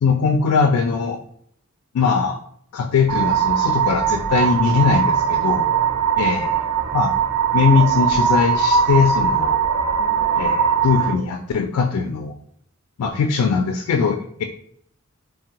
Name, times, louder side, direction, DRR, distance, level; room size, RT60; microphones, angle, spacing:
voice 1, 0.0-1.2 1.9-2.4 2.7-5.6 6.2-6.5 6.9-7.1 7.5-9.6 10.4-12.3 13.0-14.4, left 5 dB, 90° left, 5 dB, 0.3 m, -20 dB
sound 1, 3.1-11.1, right 7 dB, 80° right, 0.4 m, -20 dB
3.4 x 2.0 x 2.8 m, 0.65 s
head